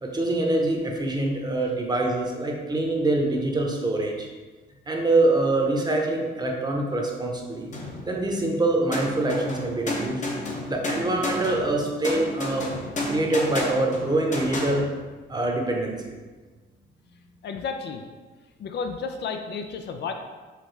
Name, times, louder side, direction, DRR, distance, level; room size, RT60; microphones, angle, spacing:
voice 1, 0.0-4.3 4.9-7.7 8.1-10.2 10.6-12.7 13.1-14.9 15.3-16.0, right 2 dB, 20° right, 0 dB, 0.8 m, -24 dB
sound 1, 7.7-8.5 8.9-14.8, left 2 dB, 40° left, 0.9 m, -32 dB
voice 2, 17.4-18.0 18.6-20.1, left 5 dB, 60° left, 5 dB, 0.5 m, -32 dB
4.8 x 3.4 x 3.3 m, 1.3 s
cardioid pair, 90°, 20 cm